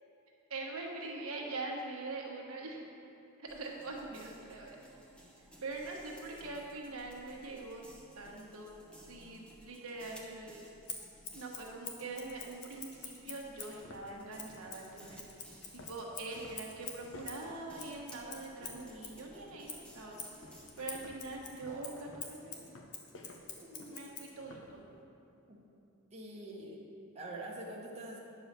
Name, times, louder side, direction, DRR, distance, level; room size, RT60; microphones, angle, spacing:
voice 1, 0.5-2.8 3.4-4.8 5.6-7.8 8.1-8.7 9.1-10.6 11.3-15.4 15.7-20.2 20.8-22.5 23.9-24.8, right 2 dB, 70° right, -1 dB, 1.2 m, -43 dB
sound 1, 3.5-21.4, right 1 dB, 5° left, 0.9 m, -58 dB
Scissors, 10.9-13.8 14.4-19.2 19.7-24.3, left 5 dB, 80° left, 1.1 m, -47 dB
sound 2, 13.0-13.1 13.6-19.1 19.4-19.8 20.4-24.8, left 2 dB, 60° left, 0.8 m, -55 dB
voice 2, 21.6-22.0 23.6-24.0 25.5-25.6 26.1-26.8 27.1-28.2, right 1 dB, 30° right, -4 dB, 1.1 m, -45 dB
9.6 x 4.8 x 6.6 m, 2.6 s
head